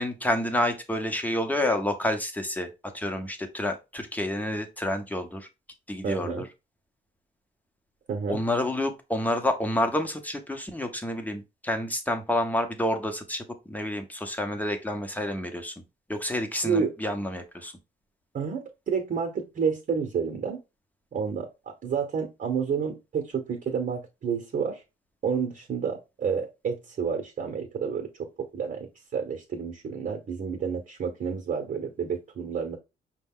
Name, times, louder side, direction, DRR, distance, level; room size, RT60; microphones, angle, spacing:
voice 1, 0.0-2.7 2.9-5.5 5.9-6.4 8.3-15.7 16.1-17.7, left 1 dB, 10° left, 6 dB, 0.9 m, -29 dB
voice 2, 6.0-6.4 8.1-8.4 16.6-16.9 18.3-20.6 21.1-24.8 25.2-32.8, right 6 dB, 45° right, 3 dB, 1.0 m, -30 dB
5.1 x 2.3 x 3.7 m, 0.25 s
cardioid pair, 90°, 20 cm